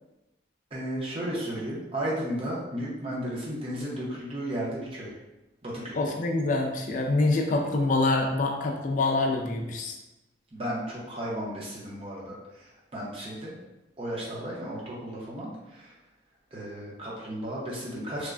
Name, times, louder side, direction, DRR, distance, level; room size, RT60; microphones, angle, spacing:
voice 1, 0.7-5.1 5.6-6.0 10.5-13.6 14.0-15.9 16.5-18.3, equal, 30° right, -5 dB, 0.6 m, -34 dB
voice 2, 5.9-9.9, left 2 dB, 45° left, 2 dB, 0.3 m, -25 dB
3.1 x 2.1 x 2.4 m, 0.98 s
head